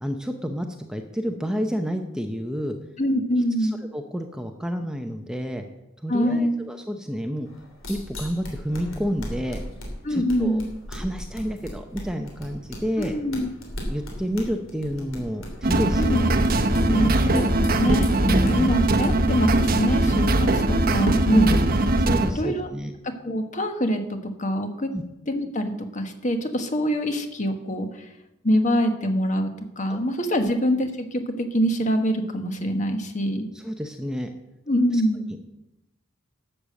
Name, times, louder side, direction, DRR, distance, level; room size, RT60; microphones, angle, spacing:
voice 1, 0.0-2.8 3.6-5.6 6.0-7.5 7.9-9.6 10.1-10.6 10.9-13.1 13.9-16.2 16.7-17.4 18.2-18.7 21.3-21.5 22.1-22.9 24.9-25.0 29.9-30.0 33.5-34.3 34.9-35.0, equal, 5° right, 5 dB, 0.7 m, -29 dB
voice 2, 3.0-3.8 6.1-6.5 10.0-10.6 13.0-13.5 16.0-16.2 16.9-21.7 22.3-22.7 23.0-24.9 25.3-28.1 28.4-33.5 34.7-35.2, equal, 35° left, 7 dB, 1.3 m, -24 dB
sound 1, 7.4-21.2, equal, 70° left, 3.3 m, -39 dB
sound 2, 15.6-22.3, right 1 dB, 45° right, 1.0 m, -21 dB
12.0 x 6.8 x 7.6 m, 0.93 s
head